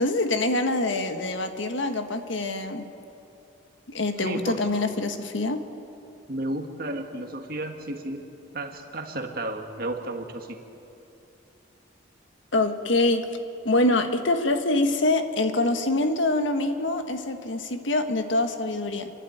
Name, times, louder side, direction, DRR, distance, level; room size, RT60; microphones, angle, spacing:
voice 1, 0.0-2.9 3.9-5.6 12.5-13.3 13.6-19.1, left 2 dB, 70° left, 7 dB, 1.5 m, -25 dB
voice 2, 4.2-4.6 6.3-8.2 8.5-10.6, right 1 dB, 45° right, 4 dB, 1.8 m, -32 dB
29.0 x 11.5 x 9.3 m, 2.8 s
head